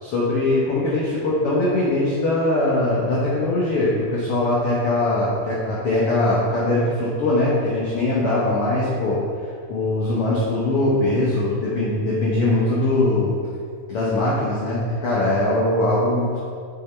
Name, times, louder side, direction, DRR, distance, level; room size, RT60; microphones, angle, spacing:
voice 1, 0.0-9.2 9.7-13.3 13.9-16.4, left 2 dB, 60° left, -7 dB, 1.6 m, -21 dB
7.1 x 6.0 x 4.4 m, 2.3 s
omnidirectional pair, 3.7 m